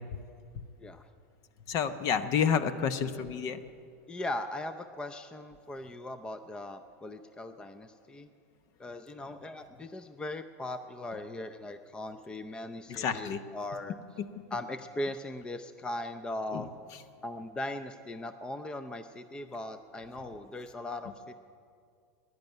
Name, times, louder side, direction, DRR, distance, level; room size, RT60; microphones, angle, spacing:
voice 1, 1.7-3.6 12.9-13.4 16.5-16.6, left 7 dB, 45° left, 12 dB, 0.9 m, -29 dB
voice 2, 4.1-8.3 8.8-13.9 14.5-16.7 17.2-21.3, left 1 dB, 10° left, 10 dB, 0.5 m, -39 dB
14.5 x 11.0 x 9.3 m, 2.4 s
supercardioid pair, 125°, 8 cm